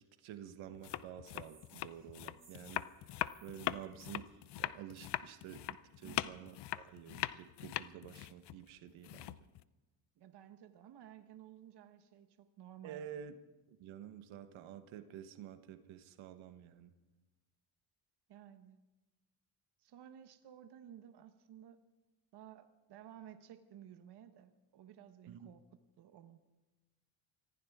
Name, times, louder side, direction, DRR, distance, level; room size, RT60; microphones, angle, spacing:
voice 1, 0.2-4.3 4.5-9.4 12.8-13.3 13.7-16.9 25.3-25.5, right 10 dB, 85° right, 9 dB, 1.3 m, -50 dB
sound 1, 0.7-9.6, left 14 dB, 60° left, 0.6 m, -41 dB
sound 2, 1.4-5.2, right 4 dB, 25° right, 4.4 m, -67 dB
voice 2, 6.0-6.4 10.2-13.1 18.3-18.8 19.8-21.8 22.3-25.6 26.0-26.4, right 10 dB, 60° right, 8 dB, 1.1 m, -55 dB
24.5 x 15.5 x 3.6 m, 1.1 s
cardioid pair, 105°, 46 cm